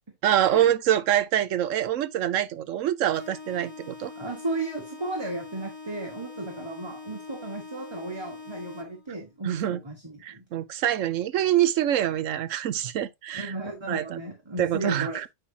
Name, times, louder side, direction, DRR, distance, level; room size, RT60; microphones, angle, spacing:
voice 1, 0.2-4.1 9.4-9.8 10.2-13.5 13.9-14.2 14.6-15.3, right 11 dB, 85° right, 1.1 m, -25 dB
sound 1, 3.1-9.1, left 4 dB, 80° left, 2.6 m, -43 dB
voice 2, 4.1-10.4 13.3-15.2, right 2 dB, 20° right, 1.6 m, -34 dB
8.9 x 5.0 x 2.8 m
omnidirectional pair, 1.3 m